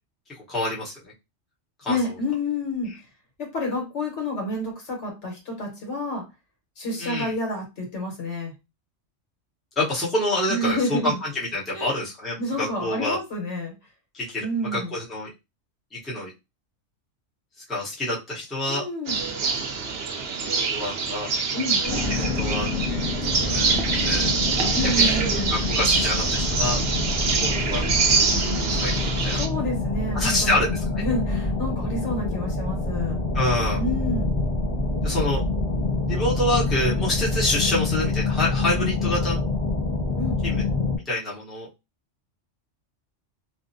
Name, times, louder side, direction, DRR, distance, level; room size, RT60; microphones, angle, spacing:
voice 1, 0.5-1.0 1.8-2.0 7.0-7.3 9.8-13.2 14.1-14.5 14.7-15.3 15.9-16.3 17.7-18.8 20.4-21.3 22.2-23.2 23.4-23.7 24.0-24.4 24.9-25.2 25.5-26.8 27.3-28.1 28.8-29.4 30.1-31.0 33.3-33.8 35.0-35.4 36.1-39.4 40.4-40.6 41.0-41.7, left 1 dB, ahead, -7 dB, 0.8 m, -27 dB
voice 2, 1.9-2.9 3.4-6.2 6.8-8.5 10.5-11.1 11.7-12.0 12.4-13.7 14.4-14.9 18.7-19.2 21.5-21.8 24.7-25.6 29.4-30.6 30.9-33.2 33.8-34.3 40.2-40.4, left 1 dB, 70° left, 0 dB, 1.4 m, -29 dB
sound 1, 19.1-29.5, right 4 dB, 60° right, 0.8 m, -25 dB
sound 2, 21.8-41.0, left 3 dB, 30° left, 1.0 m, -26 dB
2.8 x 2.0 x 2.6 m, 0.25 s
omnidirectional pair, 1.2 m